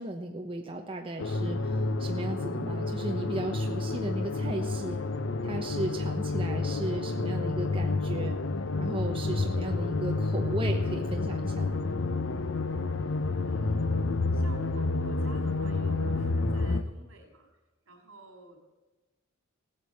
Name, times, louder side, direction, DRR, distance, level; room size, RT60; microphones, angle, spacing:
voice 1, 0.0-5.0 5.4-8.4 8.8-11.8, right 1 dB, 25° right, 2 dB, 1.1 m, -36 dB
sound 1, 1.2-16.8, left 3 dB, 65° left, 0.8 m, -29 dB
voice 2, 13.4-13.9 14.3-17.5 17.9-18.6, right 1 dB, 70° right, 3 dB, 4.5 m, -51 dB
17.0 x 10.0 x 7.9 m, 1.2 s
head